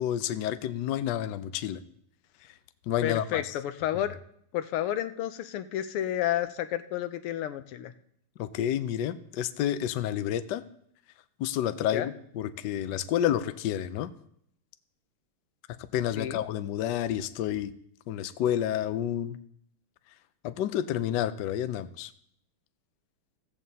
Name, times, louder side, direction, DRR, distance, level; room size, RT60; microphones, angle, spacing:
voice 1, 0.0-1.8 2.4-2.6 2.9-3.5 8.4-10.6 11.4-14.1 15.7-17.7 18.1-19.4 20.4-22.1, left 11 dB, 70° left, 11 dB, 1.1 m, -30 dB
voice 2, 3.0-4.2 4.5-7.9 11.9-12.1 16.2-16.4, left 12 dB, 85° left, 10 dB, 1.6 m, -31 dB
15.0 x 15.0 x 2.8 m, 0.70 s
omnidirectional pair, 2.4 m